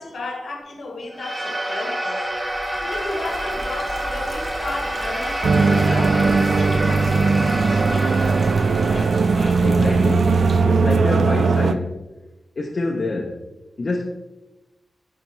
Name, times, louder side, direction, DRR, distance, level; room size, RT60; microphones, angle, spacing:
voice 1, 0.0-2.3 2.8-8.3, left 2 dB, 65° left, 1.1 m, -34 dB
sound 1, 1.1-11.7, right 1 dB, 20° right, 1.1 m, -28 dB
sound 2, 2.2-10.6, right 1 dB, 40° right, 1.2 m, -36 dB
sound 3, 5.4-11.7, right 4 dB, 75° right, 0.3 m, -18 dB
voice 2, 9.3-10.4 10.6-11.9 12.6-13.4 13.8-14.1, left 2 dB, 45° left, 0.6 m, -27 dB
10.5 x 3.5 x 3.1 m
wide cardioid pair, 145°, 0 cm